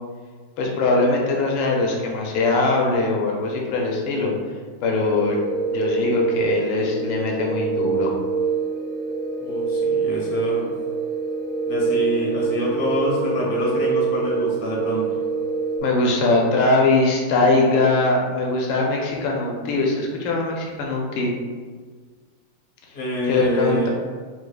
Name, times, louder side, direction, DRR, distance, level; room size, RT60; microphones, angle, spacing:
voice 1, 0.6-4.3 4.8-5.4 5.7-8.1 15.8-21.3 23.3-23.9, left 3 dB, 85° left, 0 dB, 1.4 m, -21 dB
sound 1, 5.0-15.8, right 5 dB, 80° right, 1.7 m, -25 dB
voice 2, 9.4-10.7 11.7-15.2 22.9-23.9, left 1 dB, 55° left, -4 dB, 0.7 m, -26 dB
4.5 x 2.3 x 2.3 m, 1.5 s
omnidirectional pair, 2.2 m